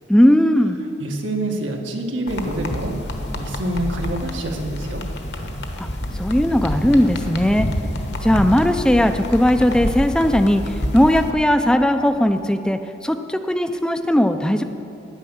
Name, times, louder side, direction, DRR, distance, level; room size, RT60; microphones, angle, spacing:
voice 1, 0.1-0.8 5.8-5.9 6.1-7.7 8.2-14.6, left 1 dB, 5° left, 8 dB, 0.4 m, -18 dB
voice 2, 1.0-2.9 3.3-5.0, right 1 dB, 90° right, 1 dB, 1.6 m, -26 dB
sound 1, 2.3-11.3, left 1 dB, 60° left, 1.2 m, -28 dB
10.0 x 9.4 x 7.1 m, 2.8 s
head